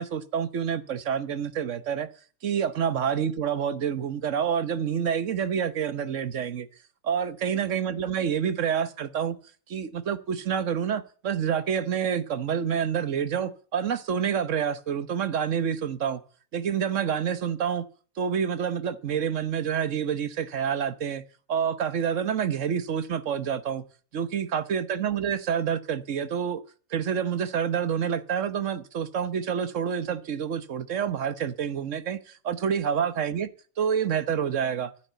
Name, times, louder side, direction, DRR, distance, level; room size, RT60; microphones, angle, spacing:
voice 1, 0.0-2.1 2.4-6.7 7.0-9.4 9.7-16.2 16.5-17.8 18.2-21.2 21.5-23.8 24.1-26.6 26.9-33.5 33.8-34.9, right 8 dB, 60° right, 1.3 m, -28 dB
12.0 x 9.8 x 8.1 m
omnidirectional pair, 1.5 m